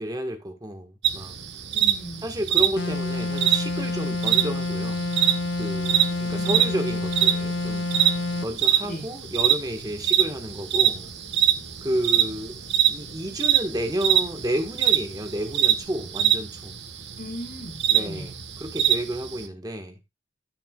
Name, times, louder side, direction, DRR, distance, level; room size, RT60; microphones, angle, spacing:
voice 1, 0.0-1.4 2.2-5.1 5.6-7.9 8.4-11.1 11.8-12.6 12.9-16.7 17.9-18.3 18.6-20.0, right 1 dB, 20° right, 1.5 m, -31 dB
sound 1, 1.0-19.5, right 10 dB, 75° right, 1.3 m, -24 dB
voice 2, 1.7-2.2 6.3-6.7 8.8-9.1 17.2-18.3, equal, 55° left, 4.1 m, -37 dB
sound 2, 2.8-8.5, left 2 dB, 75° left, 0.6 m, -28 dB
sound 3, 5.8-15.8, left 2 dB, 40° left, 5.2 m, -52 dB
14.5 x 6.8 x 2.4 m
head